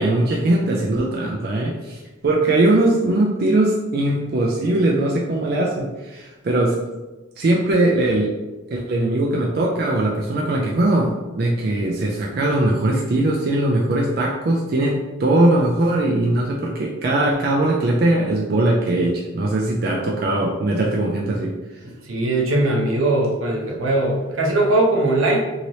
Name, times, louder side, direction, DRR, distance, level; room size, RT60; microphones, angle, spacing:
voice 1, 0.0-6.8 7.4-8.3 8.7-21.6, right 1 dB, 50° right, -2 dB, 0.4 m, -20 dB
voice 2, 21.8-25.5, right 2 dB, 85° right, -1 dB, 0.7 m, -20 dB
3.0 x 2.8 x 2.7 m, 1.1 s
head